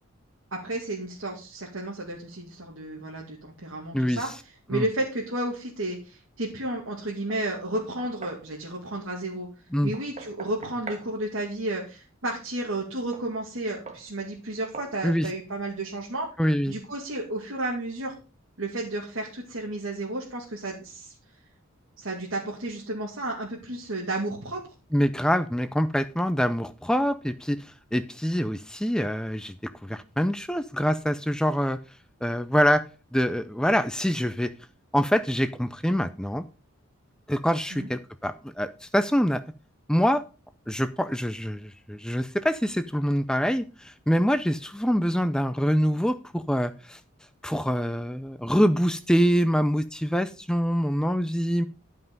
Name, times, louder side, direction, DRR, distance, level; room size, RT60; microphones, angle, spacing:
voice 1, 0.5-4.3 4.7-9.5 9.8-16.3 16.7-18.1 18.6-21.1 22.0-24.6 37.7-37.9, right 1 dB, 65° right, -2 dB, 2.2 m, -32 dB
voice 2, 3.9-4.3 4.7-4.9 9.7-9.9 15.0-15.3 16.4-16.7 24.9-29.5 29.8-31.8 32.2-32.8 33.1-34.5 34.9-36.4 37.3-39.4 39.9-40.2 40.7-47.0 47.4-51.6, equal, 5° left, 11 dB, 0.4 m, -25 dB
Knock, 7.3-8.5 9.9-11.1 13.1-13.3 13.9-14.1 14.7-15.0, right 3 dB, 35° right, 1.5 m, -42 dB
12.0 x 5.6 x 5.3 m, 0.34 s
head